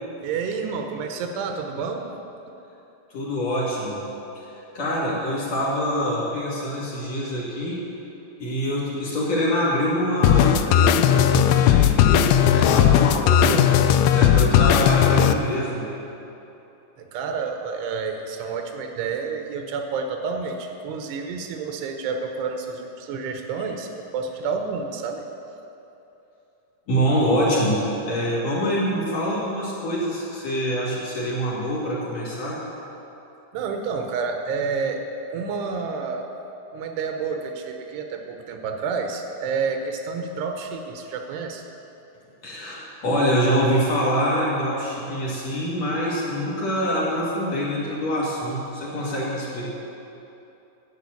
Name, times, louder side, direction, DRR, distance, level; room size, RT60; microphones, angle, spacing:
voice 1, 0.2-2.1 17.0-25.2 33.5-35.0 35.3-36.3 36.7-41.6, right 5 dB, 90° right, 4 dB, 3.1 m, -29 dB
voice 2, 3.1-4.0 4.7-7.8 8.4-13.7 14.1-15.9 26.9-32.6 42.4-49.7, equal, 50° left, -6 dB, 2.9 m, -25 dB
sound 1, 10.2-15.3, left 10 dB, 85° left, 2.3 m, -17 dB
10.5 x 7.3 x 8.5 m, 2.9 s
omnidirectional pair, 4.6 m